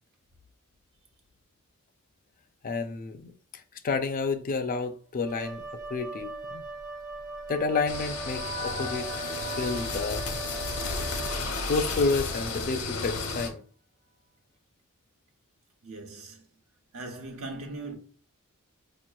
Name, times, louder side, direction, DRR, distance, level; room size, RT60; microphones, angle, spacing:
voice 1, 2.6-3.3 3.8-5.6 5.9-6.6 7.5-9.1 9.5-10.2 11.7-13.6, left 4 dB, 40° left, 0.4 m, -30 dB
Wind instrument woodwind instrument, 5.3-11.8, right 3 dB, 15° right, 0.6 m, -40 dB
sound 1, 6.9-12.2, right 1 dB, 40° right, 1.2 m, -42 dB
sound 2, 7.9-13.5, left 3 dB, 85° left, 0.9 m, -33 dB
voice 2, 15.8-16.5 16.9-18.0, right 2 dB, 75° right, 0.9 m, -39 dB
4.9 x 3.0 x 2.2 m
head